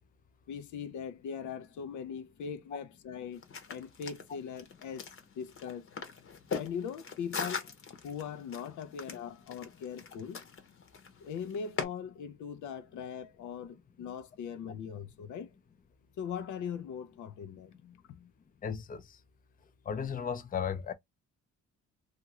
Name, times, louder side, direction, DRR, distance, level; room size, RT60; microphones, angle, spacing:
voice 1, 0.5-5.9 6.6-10.5 11.2-15.5 16.2-18.3, left 7 dB, 75° left, 0.6 m, -41 dB
sound 1, 3.3-11.8, left 5 dB, 45° left, 0.9 m, -41 dB
voice 2, 18.6-19.2 19.9-20.9, left 7 dB, 30° left, 0.5 m, -35 dB
2.7 x 2.5 x 2.8 m
cardioid pair, 90°, 30 cm